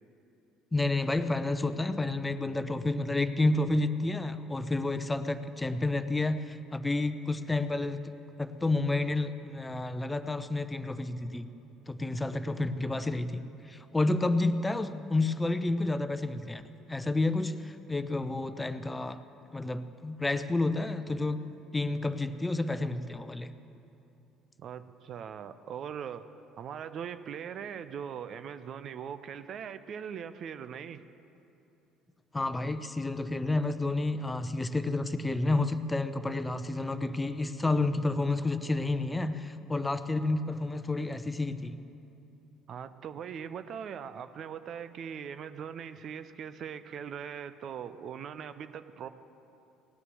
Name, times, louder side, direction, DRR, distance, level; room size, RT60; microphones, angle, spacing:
voice 1, 0.7-8.1 8.4-11.5 11.9-16.6 16.9-19.2 19.5-21.4 21.7-23.5 32.3-41.8, left 2 dB, 15° left, 11 dB, 0.8 m, -30 dB
voice 2, 24.6-26.3 26.6-31.0 42.7-49.1, right 8 dB, 50° right, 12 dB, 0.7 m, -40 dB
18.5 x 9.7 x 7.6 m, 2.9 s
figure-of-eight pair, 55°, 0 cm